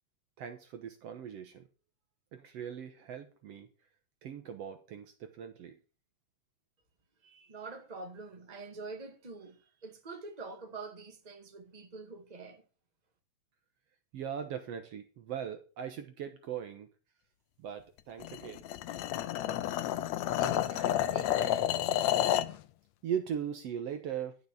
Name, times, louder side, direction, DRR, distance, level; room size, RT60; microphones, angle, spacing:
voice 1, 0.4-1.7 2.3-3.7 4.2-5.8 14.1-16.9 17.6-18.7 23.0-24.4, right 8 dB, 65° right, 2.0 m, -39 dB
voice 2, 7.2-12.6 20.4-21.7, right 3 dB, 15° right, 1.7 m, -46 dB
sound 1, 18.2-22.6, left 12 dB, 75° left, 1.9 m, -30 dB
11.5 x 6.7 x 6.9 m
omnidirectional pair, 3.3 m